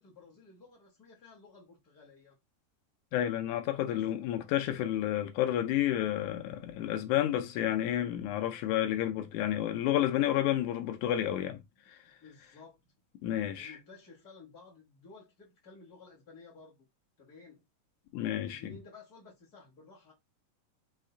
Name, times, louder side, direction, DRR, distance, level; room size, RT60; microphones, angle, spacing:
voice 1, 0.0-2.4 3.8-4.3 12.2-12.8 13.5-16.8 17.2-17.6 18.4-20.1, left 3 dB, 60° left, 0.9 m, -54 dB
voice 2, 3.1-11.6 11.9-12.0 13.2-13.8 18.1-18.6, left 12 dB, 85° left, 1.7 m, -30 dB
5.7 x 2.5 x 3.8 m
omnidirectional pair, 4.0 m